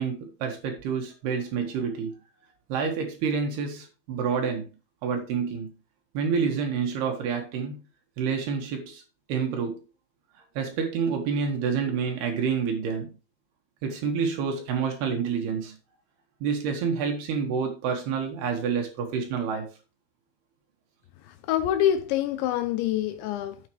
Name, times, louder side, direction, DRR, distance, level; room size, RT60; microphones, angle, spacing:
voice 1, 0.0-2.1 2.7-4.7 5.0-5.7 6.1-7.9 8.2-9.0 9.3-9.8 10.6-13.1 13.8-15.8 16.4-19.7, right 6 dB, 65° right, 3.0 m, -28 dB
voice 2, 21.3-23.6, left 11 dB, 80° left, 2.8 m, -26 dB
9.5 x 8.1 x 3.1 m
omnidirectional pair, 5.6 m